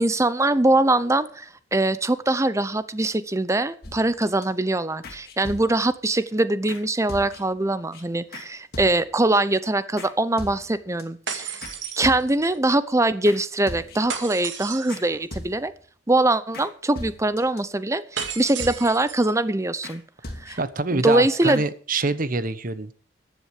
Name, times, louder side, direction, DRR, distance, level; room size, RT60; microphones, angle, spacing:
voice 1, 0.0-11.6 12.0-15.7 16.1-20.0 20.4-20.6 20.9-21.6, right 2 dB, 15° right, 14 dB, 0.8 m, -22 dB
sound 1, 3.8-4.5 5.0-6.0 6.7-6.8 7.1-7.6 7.9-8.0 8.3-8.5 8.7-9.3 10.0-10.1 10.4-11.0 11.6-12.6 13.3-13.4 13.7-14.2 14.5-14.6 14.9-15.0 15.3-15.8 16.5-16.7 17.0-17.6 18.2-19.1 19.8-20.0 20.2-20.8 21.1-21.2 21.5-21.6, left 1 dB, 55° left, 2.8 m, -39 dB
sound 2, 11.3-12.6 14.1-15.1 18.2-19.3, right 7 dB, 80° right, 2.3 m, -33 dB
voice 2, 20.6-22.9, right 3 dB, 50° right, 14 dB, 1.0 m, -25 dB
14.5 x 10.5 x 5.0 m, 0.43 s
head